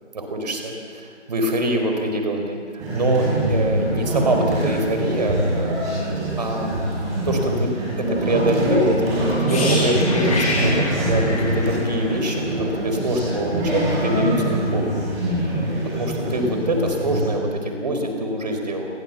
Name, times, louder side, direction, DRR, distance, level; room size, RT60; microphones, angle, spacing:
voice 1, 0.1-5.8 6.4-6.7 7.2-7.7 8.2-14.8 15.9-18.9, right 1 dB, 35° right, 4 dB, 4.4 m, -24 dB
sound 1, 2.8-17.3, right 1 dB, 10° right, 6.1 m, -23 dB
sound 2, 9.5-13.3 13.6-13.8, left 2 dB, 30° left, 6.2 m, -28 dB
28.5 x 23.5 x 7.2 m, 2.2 s
figure-of-eight pair, 160°, 36 cm